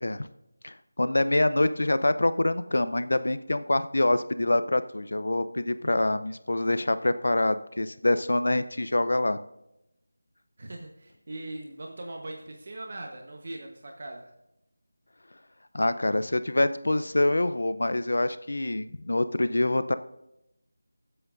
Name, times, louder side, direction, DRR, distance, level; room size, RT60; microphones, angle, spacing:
voice 1, 0.6-9.4 15.7-20.0, left 2 dB, 70° left, 13 dB, 0.6 m, -25 dB
voice 2, 10.6-14.3, right 2 dB, 50° right, 2 dB, 1.1 m, -40 dB
22.5 x 7.9 x 2.6 m, 0.87 s
figure-of-eight pair, 170°, 0 cm